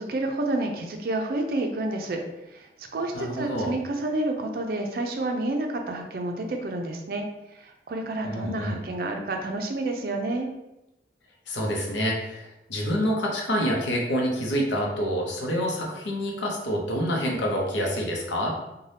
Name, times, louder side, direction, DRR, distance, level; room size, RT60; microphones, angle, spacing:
voice 1, 0.0-2.2 2.5-7.2 7.5-10.5, right 2 dB, 55° right, 3 dB, 0.4 m, -29 dB
voice 2, 3.1-3.7 8.2-8.8 11.5-18.5, equal, 90° left, -1 dB, 0.7 m, -27 dB
2.6 x 2.2 x 3.3 m, 0.92 s
head